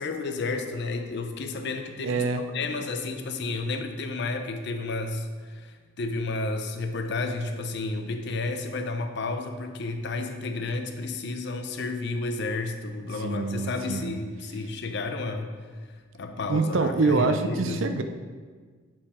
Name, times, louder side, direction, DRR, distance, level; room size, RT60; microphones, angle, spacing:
voice 1, 0.0-2.3 2.5-15.5 16.1-18.0, left 3 dB, 55° left, 6 dB, 0.6 m, -31 dB
voice 2, 2.0-2.4 13.2-14.1 16.5-18.0, right 3 dB, 75° right, 8 dB, 0.5 m, -25 dB
7.4 x 4.7 x 4.3 m, 1.5 s
head